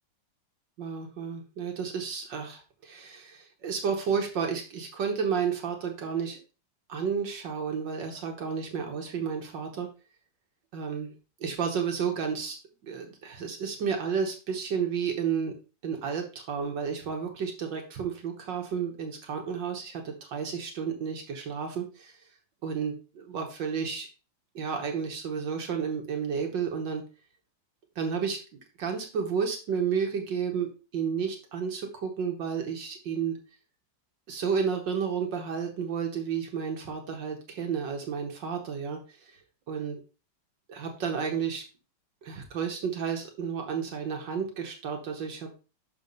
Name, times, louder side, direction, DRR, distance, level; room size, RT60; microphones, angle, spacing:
voice 1, 0.8-6.4 6.9-9.9 10.7-11.1 11.4-12.6 12.8-15.5 15.8-22.2 22.6-24.1 24.5-27.0 27.9-28.4 28.8-33.4 34.3-39.4 39.7-40.0 40.7-41.6 42.2-45.6, right 6 dB, 70° right, 3 dB, 1.7 m, -31 dB
6.3 x 4.4 x 5.3 m, 0.33 s
omnidirectional pair, 2.1 m